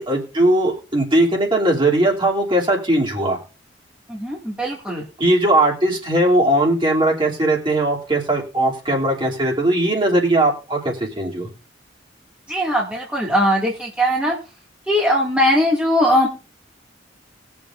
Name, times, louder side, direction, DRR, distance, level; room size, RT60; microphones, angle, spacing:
voice 1, 0.0-3.4 5.2-11.5, right 1 dB, 25° right, -2 dB, 3.0 m, -19 dB
voice 2, 4.1-5.0 12.5-14.4 14.9-16.3, equal, 5° right, -4 dB, 2.2 m, -19 dB
20.5 x 7.0 x 2.6 m, 0.35 s
head